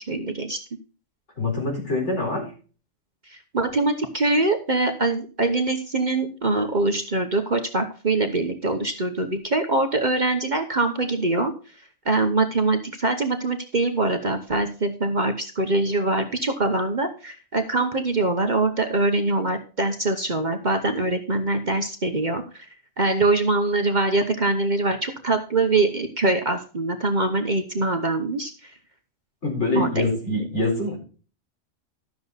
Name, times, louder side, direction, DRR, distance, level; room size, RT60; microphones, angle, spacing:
voice 1, 0.1-0.6 3.3-11.5 12.0-22.7 23.0-28.7 29.7-30.4, right 2 dB, 40° right, 5 dB, 1.1 m, -23 dB
voice 2, 1.4-2.5 29.4-31.0, left 2 dB, 60° left, -1 dB, 4.6 m, -25 dB
13.0 x 6.8 x 4.0 m, 0.37 s
omnidirectional pair, 1.3 m